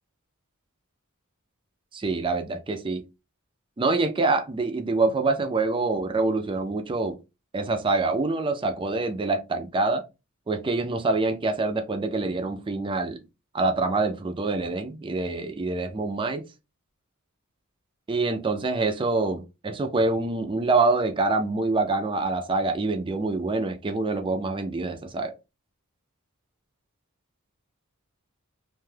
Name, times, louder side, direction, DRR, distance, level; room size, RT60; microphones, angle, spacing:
voice 1, 1.9-3.0 3.8-7.2 7.5-10.0 10.5-13.2 13.5-16.4 18.1-25.3, right 3 dB, 25° right, 0.4 m, -25 dB
2.6 x 2.3 x 3.2 m
head